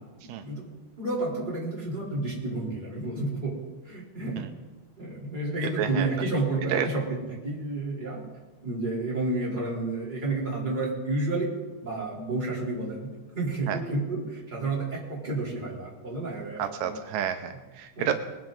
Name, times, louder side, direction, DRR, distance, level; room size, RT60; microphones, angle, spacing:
voice 1, 0.2-0.7 1.0-3.5 3.8-4.5 5.0-8.2 8.6-11.5 11.8-13.1 13.3-17.0 18.0-18.1, right 2 dB, 15° right, -5 dB, 3.6 m, -30 dB
voice 2, 5.8-6.1 6.7-6.9 13.7-13.8 16.6-18.1, right 9 dB, 85° right, 8 dB, 2.2 m, -29 dB
21.0 x 10.5 x 3.9 m, 1.2 s
omnidirectional pair, 3.9 m